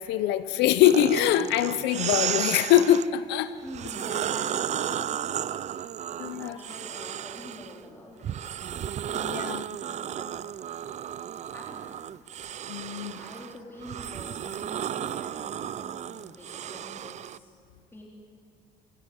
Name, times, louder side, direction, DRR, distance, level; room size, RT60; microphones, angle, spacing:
voice 1, 0.0-3.5 6.2-6.6 9.1-9.6 12.7-13.1, left 12 dB, 85° left, 12 dB, 0.7 m, -23 dB
sound 1, 0.8-3.1 3.7-7.8 8.2-17.4, right 10 dB, 45° right, 0.5 m, -33 dB
voice 2, 3.6-5.6 5.9-8.7 9.2-10.5 11.5-11.9 13.0-17.5 17.9-18.0, left 1 dB, 15° left, -3 dB, 3.8 m, -46 dB
26.5 x 13.0 x 9.6 m, 2.3 s
cardioid pair, 110°, 17 cm